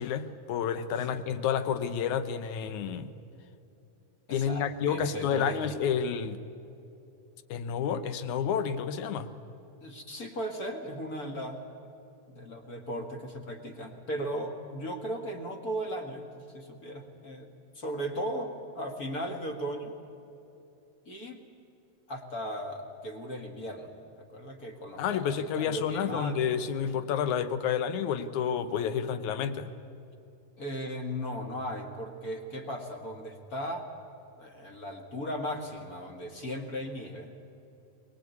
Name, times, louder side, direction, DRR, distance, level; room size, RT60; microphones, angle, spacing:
voice 1, 0.0-3.1 4.3-6.4 7.5-9.3 25.0-29.7, left 7 dB, 75° left, 12 dB, 2.3 m, -30 dB
voice 2, 4.3-5.8 9.8-11.9 12.3-17.5 17.7-19.9 21.1-21.4 22.1-23.9 24.3-26.5 30.6-33.9 34.4-37.3, equal, 35° left, 4 dB, 1.9 m, -37 dB
23.0 x 20.5 x 8.4 m, 2.8 s
omnidirectional pair, 3.5 m